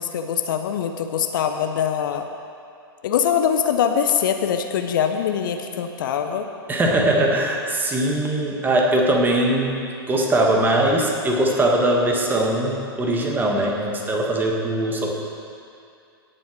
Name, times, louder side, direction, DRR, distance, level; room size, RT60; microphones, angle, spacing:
voice 1, 0.0-2.3 3.0-6.5, left 8 dB, 55° left, 6 dB, 0.8 m, -23 dB
voice 2, 6.7-15.1, right 1 dB, 15° right, 0 dB, 1.7 m, -21 dB
17.5 x 7.6 x 4.6 m, 2.4 s
figure-of-eight pair, 100°, 13 cm